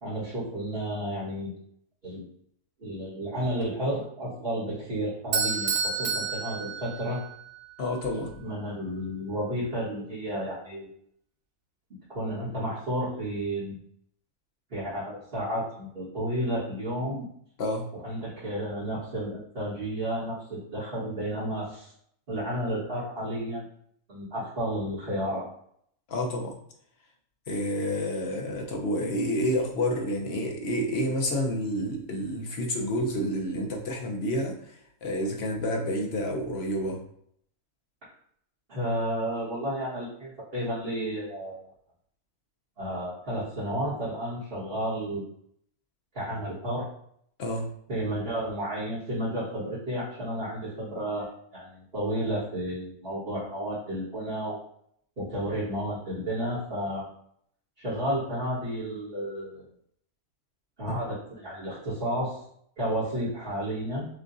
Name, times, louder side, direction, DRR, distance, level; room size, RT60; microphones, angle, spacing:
voice 1, 0.0-1.5 2.0-2.2 2.8-7.2 8.4-10.9 12.1-13.7 14.7-17.2 17.9-21.9 22.3-23.6 24.1-25.5 38.7-41.6 42.8-45.3 46.1-46.9 47.9-54.6 55.2-57.1 57.8-59.6 60.8-62.4 62.8-64.1, right 1 dB, 40° right, -10 dB, 1.6 m, -32 dB
Bell / Doorbell, 5.3-7.4, right 5 dB, 70° right, 0.5 m, -29 dB
voice 2, 7.8-8.3 17.6-17.9 26.1-26.5 27.5-37.0 47.4-47.7 60.9-61.0, equal, 50° left, 1 dB, 0.9 m, -29 dB
6.6 x 2.5 x 2.6 m, 0.68 s
omnidirectional pair, 1.5 m